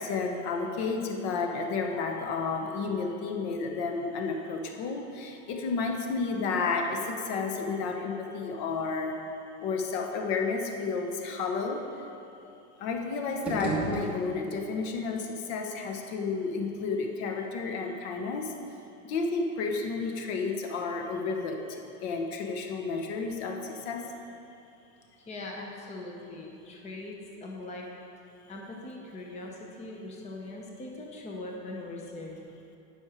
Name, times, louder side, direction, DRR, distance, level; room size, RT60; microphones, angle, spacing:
voice 1, 0.0-9.2 9.6-11.8 12.8-18.5 19.1-21.6 22.0-24.1, left 4 dB, 60° left, 3 dB, 1.1 m, -31 dB
sound 1, 13.3-14.7, right 2 dB, 5° right, 1.3 m, -33 dB
voice 2, 25.2-27.9 28.5-32.4, left 2 dB, 20° left, -1 dB, 0.8 m, -41 dB
9.8 x 6.3 x 5.0 m, 2.7 s
supercardioid pair, 155°, 37 cm